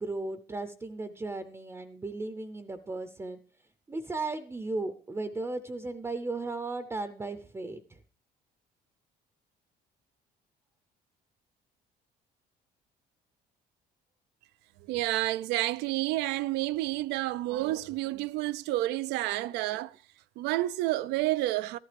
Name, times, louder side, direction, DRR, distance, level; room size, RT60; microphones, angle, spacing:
voice 1, 0.0-3.4 3.9-8.0, right 2 dB, 15° right, 0.6 m, -36 dB
voice 2, 14.9-20.0 20.4-21.8, right 16 dB, 90° right, 0.4 m, -30 dB
13.0 x 11.5 x 3.3 m
cardioid pair, 110°, 17 cm